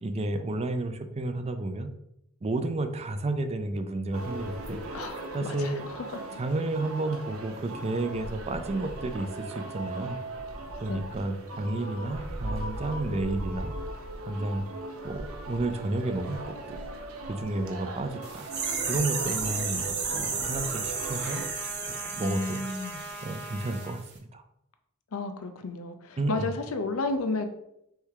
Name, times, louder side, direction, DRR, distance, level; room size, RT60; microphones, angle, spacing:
voice 1, 0.0-1.9 2.4-4.8 5.3-5.8 6.4-10.2 10.8-13.7 14.2-14.7 15.0-16.8 17.2-18.5 18.9-21.4 21.9-22.6 23.2-24.4 26.2-26.5, right 2 dB, 30° right, 8 dB, 0.4 m, -31 dB
sound 1, 4.1-21.5, right 2 dB, 75° right, 0.7 m, -39 dB
voice 2, 4.9-6.0 10.9-11.0 22.2-23.0 25.1-27.5, left 3 dB, 80° left, 8 dB, 0.6 m, -32 dB
sound 2, 18.2-23.9 24.1-24.2, right 5 dB, 55° right, 1.0 m, -33 dB
Trumpet, 19.5-24.0, right 1 dB, 10° left, 0.7 m, -43 dB
3.4 x 3.3 x 4.7 m, 0.80 s
head